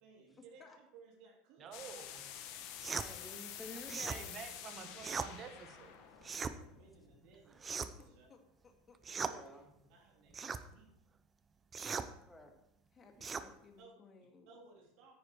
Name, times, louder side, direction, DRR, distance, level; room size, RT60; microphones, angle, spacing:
voice 1, 0.0-1.7 6.1-8.3 9.3-9.6 9.9-10.9 13.1-13.2 13.8-13.9 14.5-15.1, right 4 dB, 60° right, -1 dB, 3.0 m, -60 dB
voice 2, 1.6-2.2 4.1-5.9, right 7 dB, 40° right, 6 dB, 1.6 m, -49 dB
sound 1, 1.7-7.4, left 10 dB, 60° left, 1.4 m, -49 dB
sound 2, 2.8-3.1 3.9-4.2 5.0-5.3 6.2-6.6 7.6-8.1 9.0-9.4 10.3-10.6 11.7-12.1 13.2-13.5, right 5 dB, 25° right, 0.7 m, -39 dB
voice 3, 2.9-4.3 6.2-6.4 9.3-9.7 10.3-10.4 12.3-12.5, equal, 5° left, 3 dB, 1.8 m, -51 dB
voice 4, 7.8-9.0 12.9-14.5, left 4 dB, 30° left, 3 dB, 2.2 m, -61 dB
9.6 x 9.2 x 4.6 m, 0.80 s
hypercardioid pair, 100°, 0 cm